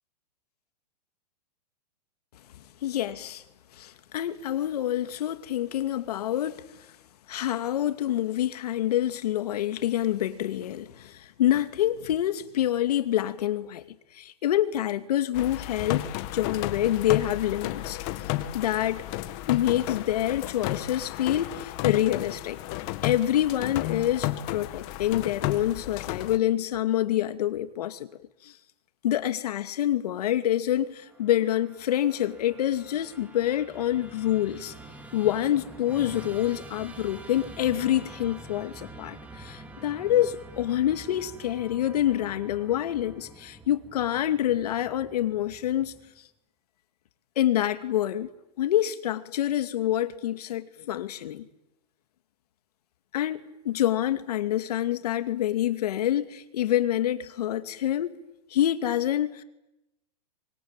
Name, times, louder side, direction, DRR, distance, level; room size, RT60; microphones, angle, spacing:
voice 1, 2.8-3.4 3.8-6.7 7.3-13.8 14.1-16.0 16.3-18.0 18.5-19.1 19.5-22.6 23.0-28.1 28.4-28.5 29.0-34.7 35.1-45.9 47.4-48.3 48.6-51.4 53.1-58.1 58.5-59.4, left 12 dB, 65° left, 2.6 m, -27 dB
sound 1, 15.3-26.4, left 15 dB, 35° left, 2.0 m, -33 dB
Musical instrument, 30.9-46.2, right 1 dB, 5° right, 2.5 m, -46 dB
25.5 x 25.5 x 9.0 m
hypercardioid pair, 150°, 21 cm